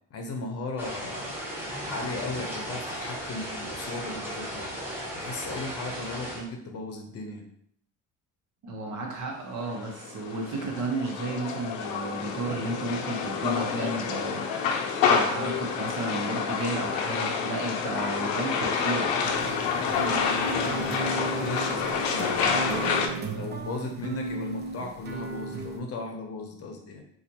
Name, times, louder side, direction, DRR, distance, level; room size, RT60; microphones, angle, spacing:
voice 1, 0.1-1.3 1.8-4.7 5.1-7.5 19.9-22.9 23.3-27.0, left 2 dB, 45° left, 3 dB, 0.7 m, -36 dB
sound 1, 0.8-6.4, equal, 5° right, 1.0 m, -36 dB
voice 2, 8.6-14.4 15.0-19.1, right 2 dB, 60° right, 0 dB, 1.1 m, -33 dB
sound 2, 9.6-23.1, left 6 dB, 85° left, 0.6 m, -28 dB
sound 3, 19.2-25.8, right 3 dB, 30° right, 0.5 m, -35 dB
4.2 x 2.5 x 2.8 m, 0.67 s
cardioid pair, 120°, 34 cm